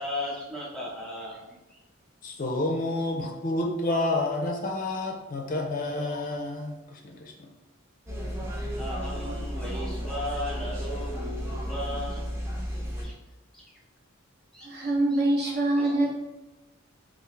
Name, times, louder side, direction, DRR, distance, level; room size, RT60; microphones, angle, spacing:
voice 1, 0.0-1.4 1.7-1.8 8.8-12.3 12.7-13.1 13.5-13.8 14.5-14.9 15.8-16.1, left 1 dB, 5° left, -5 dB, 0.9 m, -36 dB
voice 2, 2.2-7.5, left 2 dB, 40° left, 2 dB, 0.4 m, -29 dB
sound 1, 8.1-13.0, equal, 15° right, 0.5 m, -33 dB
voice 3, 14.6-16.1, right 2 dB, 50° right, -3 dB, 0.8 m, -24 dB
3.4 x 2.4 x 3.1 m, 1.0 s
head